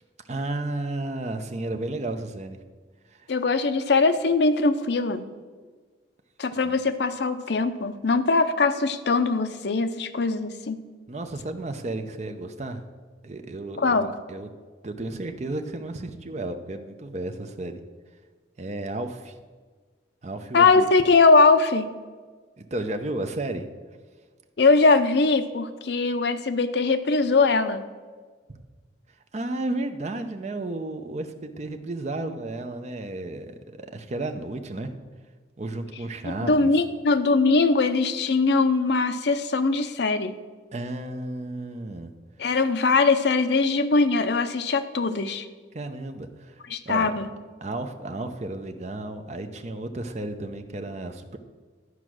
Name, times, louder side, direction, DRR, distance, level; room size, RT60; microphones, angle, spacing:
voice 1, 0.2-2.6 3.1-3.3 6.6-6.8 11.1-12.8 13.2-14.5 14.8-17.8 18.6-19.4 20.2-20.9 22.6-23.7 28.5-28.6 29.3-34.9 35.6-36.8 40.7-42.1 45.7-47.1 47.6-51.4, right 2 dB, 40° right, 7 dB, 0.6 m, -33 dB
voice 2, 3.3-5.2 6.4-10.8 13.8-14.1 20.5-21.9 24.6-27.8 36.3-40.3 42.4-45.5 46.7-47.3, left 3 dB, 65° left, 10 dB, 0.6 m, -21 dB
11.0 x 4.8 x 6.3 m, 1.5 s
head